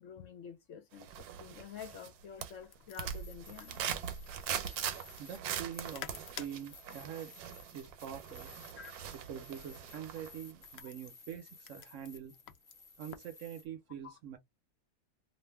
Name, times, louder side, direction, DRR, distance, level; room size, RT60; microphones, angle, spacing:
voice 1, 0.0-3.8 8.8-8.9 14.0-14.2, left 8 dB, 65° left, 0.9 m, -49 dB
sound 1, 1.0-2.1 2.4-10.4 10.7-10.8, right 9 dB, 80° right, 1.1 m, -41 dB
sound 2, 2.2-13.3, left 9 dB, 80° left, 0.5 m, -53 dB
sound 3, 2.9-13.7, left 4 dB, 35° left, 0.7 m, -57 dB
voice 2, 5.2-7.3 7.7-8.5 9.1-12.4 13.0-14.4, right 9 dB, 65° right, 0.8 m, -45 dB
2.5 x 2.4 x 3.3 m
omnidirectional pair, 1.7 m